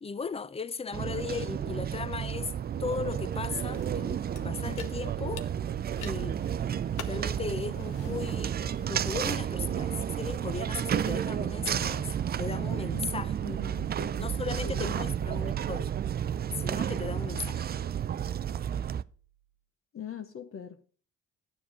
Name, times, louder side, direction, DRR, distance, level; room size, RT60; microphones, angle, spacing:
voice 1, 0.0-2.5 2.8-5.5 6.0-6.4 7.1-12.1 12.4-13.4 14.2-16.0 16.5-17.6, left 5 dB, 20° left, 0.5 m, -37 dB
sound 1, 0.9-19.0, right 9 dB, 35° right, 0.4 m, -32 dB
sound 2, 3.3-9.9, left 9 dB, 90° left, 1.1 m, -49 dB
sound 3, 4.8-19.5, right 13 dB, 90° right, 0.8 m, -53 dB
voice 2, 13.4-15.5 19.9-20.9, left 7 dB, 45° left, 0.8 m, -43 dB
9.7 x 7.2 x 4.8 m
cardioid pair, 90°, 30 cm